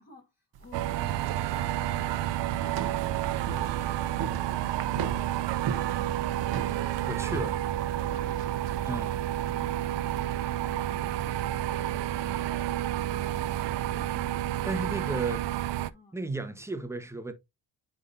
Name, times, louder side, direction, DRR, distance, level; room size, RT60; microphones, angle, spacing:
voice 1, 0.0-2.1 2.5-3.2 3.5-7.2 8.0-9.0 9.5-14.8 15.9-16.2, left 2 dB, 20° left, 1.6 m, -53 dB
sound 1, 0.5-9.4, right 6 dB, 55° right, 1.1 m, -40 dB
sound 2, 0.7-15.9, right 13 dB, 70° right, 0.6 m, -30 dB
voice 2, 7.1-7.5 8.8-9.1 14.6-15.4 16.1-17.3, right 2 dB, 5° right, 1.1 m, -33 dB
9.8 x 3.7 x 2.7 m
cardioid pair, 115°, 44 cm